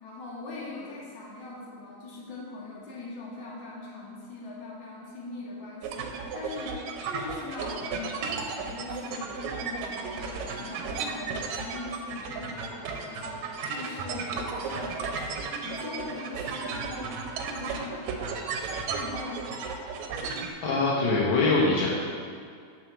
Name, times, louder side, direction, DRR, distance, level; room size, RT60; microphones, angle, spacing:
voice 1, 0.0-15.3 15.6-19.7, left 3 dB, 50° left, -5 dB, 1.7 m, -41 dB
sound 1, 5.8-20.5, right 5 dB, 80° right, 2.0 m, -34 dB
voice 2, 20.6-21.9, left 3 dB, 70° left, -5 dB, 1.2 m, -23 dB
6.1 x 4.8 x 6.1 m, 2.1 s
omnidirectional pair, 3.4 m